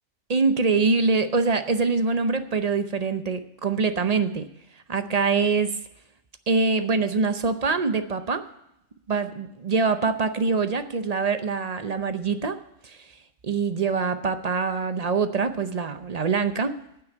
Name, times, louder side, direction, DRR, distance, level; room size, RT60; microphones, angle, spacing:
voice 1, 0.3-4.5 4.9-5.7 6.5-8.4 9.1-12.6 12.8-13.0 13.4-16.8, right 4 dB, 40° right, 9 dB, 0.6 m, -24 dB
9.6 x 8.0 x 8.6 m, 0.81 s
omnidirectional pair, 1.3 m